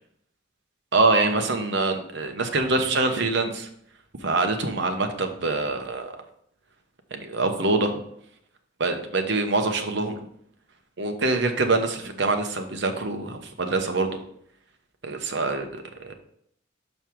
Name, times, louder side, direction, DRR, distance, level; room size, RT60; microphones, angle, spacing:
voice 1, 0.9-3.7 4.2-6.1 7.1-8.0 8.8-10.3 11.0-14.2 15.0-16.1, right 3 dB, 60° right, 5 dB, 0.9 m, -25 dB
6.1 x 5.4 x 4.5 m, 0.69 s
head